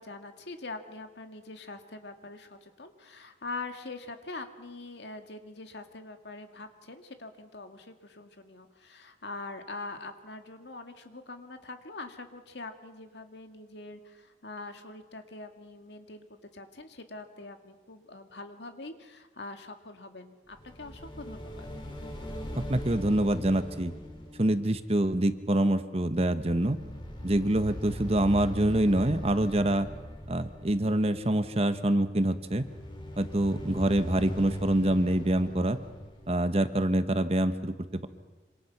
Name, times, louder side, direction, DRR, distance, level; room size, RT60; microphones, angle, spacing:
voice 1, 0.0-21.7, left 3 dB, 80° left, 6 dB, 2.1 m, -43 dB
sound 1, 20.5-25.9 26.1-31.4 32.3-37.2, equal, 30° left, 3.1 m, -40 dB
voice 2, 22.5-23.9 24.4-26.8 27.2-29.9 30.3-32.6 33.2-35.8 36.3-38.1, right 1 dB, 35° right, 10 dB, 1.2 m, -26 dB
26.5 x 26.0 x 6.0 m, 1.2 s
head